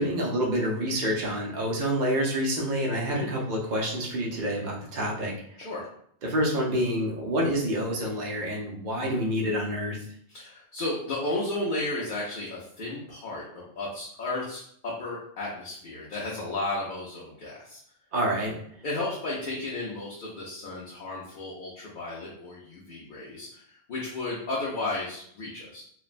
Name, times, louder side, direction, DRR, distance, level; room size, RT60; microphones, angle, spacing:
voice 1, 0.0-5.3 6.2-10.0 18.1-18.5, equal, 50° right, -2 dB, 0.7 m, -27 dB
voice 2, 10.3-17.8 18.8-25.8, left 2 dB, 55° left, -5 dB, 0.7 m, -34 dB
3.1 x 2.1 x 2.4 m, 0.66 s
omnidirectional pair, 1.2 m